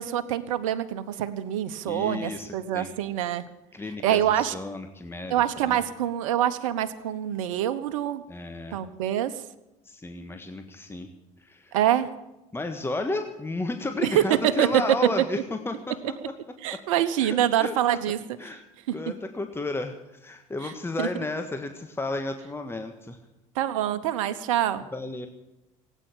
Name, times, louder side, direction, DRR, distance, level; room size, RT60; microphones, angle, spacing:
voice 1, 0.0-3.4 4.0-4.5 5.3-8.2 8.7-9.3 11.7-12.1 14.0-14.7 16.6-18.6 18.9-19.0 20.6-20.7 21.0-21.1 23.5-24.8, right 11 dB, 80° right, 11 dB, 1.0 m, -25 dB
voice 2, 1.8-2.9 3.7-5.4 5.7-5.8 8.3-8.8 9.8-11.1 11.4-11.8 12.5-16.1 17.2-17.7 18.4-18.6 18.9-23.2 24.9-25.3, left 2 dB, 15° left, 6 dB, 1.6 m, -33 dB
16.5 x 9.2 x 9.2 m, 0.95 s
hypercardioid pair, 70°, 17 cm